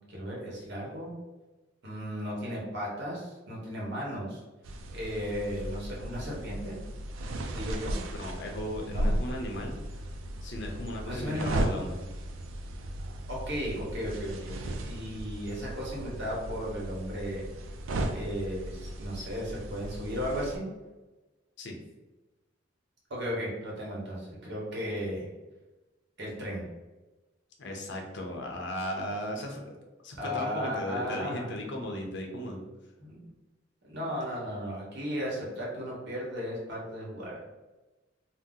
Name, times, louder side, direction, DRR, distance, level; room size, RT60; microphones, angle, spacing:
voice 1, 0.1-1.1 1.8-4.4 4.9-6.7 7.5-8.0 8.9-9.1 11.0-11.8 13.3-17.4 18.1-20.6 23.1-25.3 26.2-26.6 30.2-31.5 33.0-33.2 33.8-37.4, equal, 60° right, -4 dB, 1.1 m, -35 dB
sound 1, 4.6-20.6, right 1 dB, 85° right, 0.4 m, -36 dB
voice 2, 8.1-9.8 10.4-12.0 21.6-21.8 27.6-29.7 30.0-32.7, left 1 dB, 65° left, 1 dB, 0.6 m, -36 dB
2.7 x 2.0 x 3.7 m, 1.1 s
head